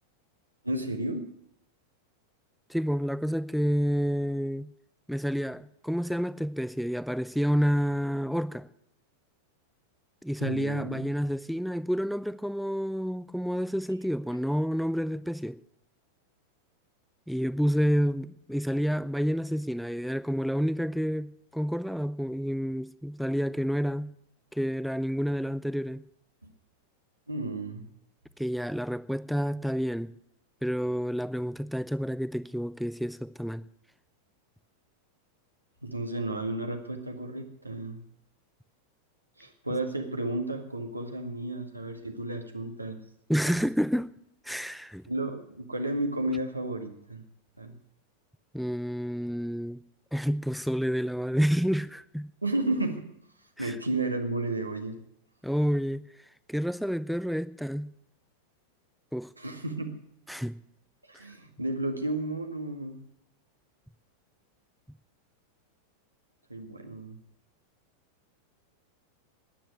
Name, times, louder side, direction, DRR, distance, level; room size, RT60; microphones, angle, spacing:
voice 1, 0.6-1.3 10.4-11.0 26.4-26.5 27.3-27.8 35.8-38.0 39.4-43.0 43.5-43.6 45.1-47.2 47.6-47.7 52.4-53.1 53.6-55.0 59.4-59.9 61.1-63.0 66.5-67.2, right 2 dB, 85° right, 1.9 m, -32 dB
voice 2, 2.7-4.7 5.1-8.7 10.2-15.6 17.3-24.1 24.5-26.0 28.4-30.1 30.6-33.6 43.3-44.1 44.5-45.0 48.5-49.8 50.1-52.3 53.6-53.7 55.4-56.1 56.5-57.9 59.1-59.3 60.3-60.6, equal, ahead, 0.6 m, -29 dB
12.5 x 10.0 x 9.2 m
figure-of-eight pair, 90°, 0 cm